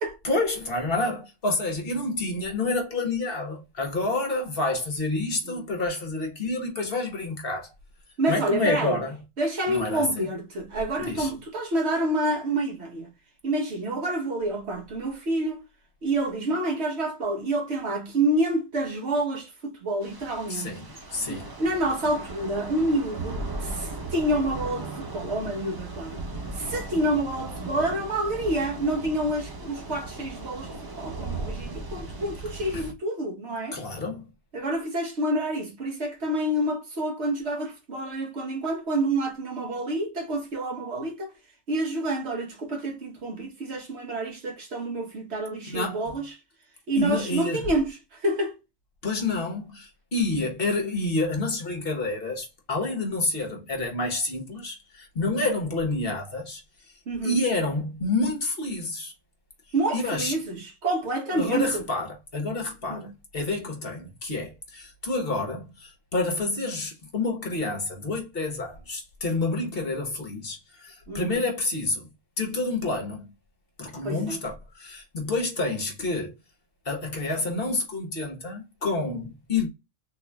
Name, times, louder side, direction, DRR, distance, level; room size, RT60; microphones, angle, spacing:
voice 1, 0.2-7.7 8.3-9.2 9.7-10.3 11.0-11.3 20.5-21.5 32.7-32.8 33.7-34.3 45.7-46.0 47.0-47.7 49.0-56.6 57.2-59.1 59.9-60.3 61.3-72.1 72.4-73.3 73.8-76.3 76.8-79.7, left 2 dB, 50° left, 1.2 m, -28 dB
voice 2, 8.2-9.0 9.4-13.1 13.4-15.6 16.0-20.7 21.3-26.2 26.5-33.8 34.5-41.3 41.7-46.4 46.9-48.6 57.1-57.4 59.7-61.8 62.9-63.1 71.1-71.4 74.0-74.4, right 1 dB, 60° right, 1.2 m, -28 dB
Thunder / Rain, 20.0-32.9, right 2 dB, 30° right, 0.4 m, -37 dB
3.7 x 3.0 x 2.2 m
omnidirectional pair, 1.3 m